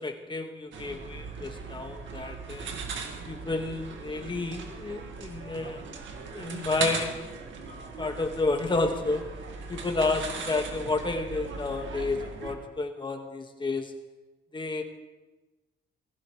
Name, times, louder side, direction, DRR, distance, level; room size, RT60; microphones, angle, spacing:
voice 1, 0.0-2.7 3.3-5.9 6.3-7.2 8.0-9.3 9.7-13.9 14.5-14.8, left 3 dB, 25° left, 4 dB, 1.8 m, -31 dB
sound 1, 0.7-12.6, right 4 dB, 70° right, 2.0 m, -38 dB
20.5 x 15.0 x 3.3 m, 1.2 s
cardioid pair, 90°, 20 cm